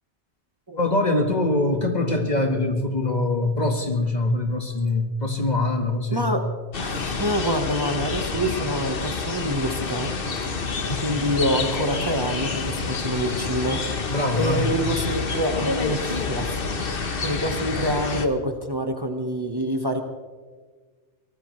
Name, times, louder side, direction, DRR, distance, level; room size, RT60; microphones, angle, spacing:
voice 1, 0.8-6.3 10.9-11.0 14.1-14.7, left 2 dB, 40° left, 4 dB, 1.6 m, -23 dB
sound 1, 6.7-18.3, left 4 dB, 55° left, 1.3 m, -28 dB
voice 2, 6.8-10.1 10.4-10.5 11.0-13.8 14.4-20.0, equal, 20° right, 4 dB, 1.3 m, -26 dB
24.0 x 18.5 x 3.2 m, 1.5 s
omnidirectional pair, 1.1 m